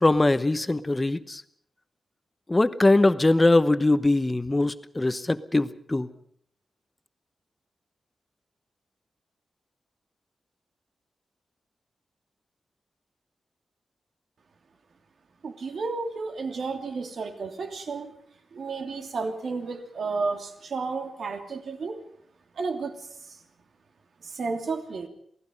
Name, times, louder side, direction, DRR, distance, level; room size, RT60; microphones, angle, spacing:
voice 1, 0.0-1.4 2.5-6.1, left 2 dB, 20° left, 12 dB, 1.0 m, -22 dB
voice 2, 15.4-18.1 18.5-22.0 22.5-23.4 24.2-25.1, right 4 dB, 70° right, 5 dB, 2.9 m, -32 dB
28.0 x 18.5 x 5.4 m, 0.65 s
wide cardioid pair, 120°, 0 cm